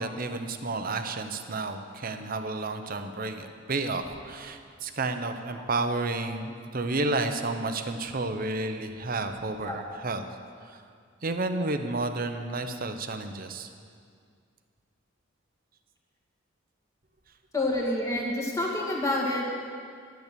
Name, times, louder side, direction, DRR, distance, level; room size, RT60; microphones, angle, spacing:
voice 1, 0.0-10.2 10.6-10.8 11.2-13.7, right 2 dB, 45° right, 7 dB, 0.8 m, -31 dB
voice 2, 17.5-19.4, left 1 dB, 15° left, -2 dB, 1.9 m, -28 dB
11.0 x 10.5 x 6.8 m, 2.2 s
head